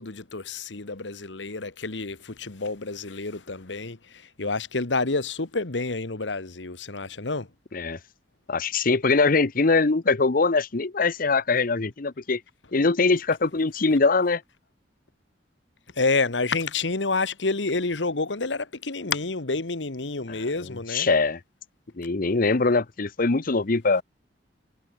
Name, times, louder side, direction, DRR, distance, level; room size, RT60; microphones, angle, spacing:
voice 1, 0.0-7.5 15.9-21.1, left 3 dB, 90° left, 1.5 m, -29 dB
voice 2, 8.5-12.4 12.7-14.4 20.9-21.4 22.0-24.0, left 3 dB, 50° left, 0.9 m, -22 dB
head